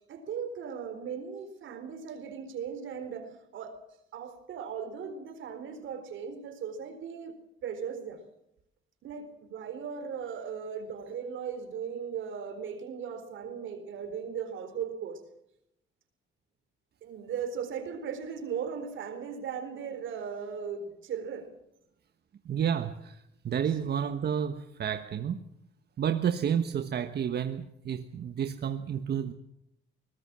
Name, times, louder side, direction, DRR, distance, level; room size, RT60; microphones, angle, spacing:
voice 1, 0.1-3.8 4.1-7.3 7.6-8.2 9.0-15.2 17.0-21.5, right 7 dB, 75° right, 9 dB, 4.1 m, -37 dB
voice 2, 22.4-25.4 26.0-29.3, right 8 dB, 55° right, 8 dB, 1.3 m, -30 dB
22.5 x 19.5 x 7.5 m, 0.79 s
cardioid pair, 90°, 20 cm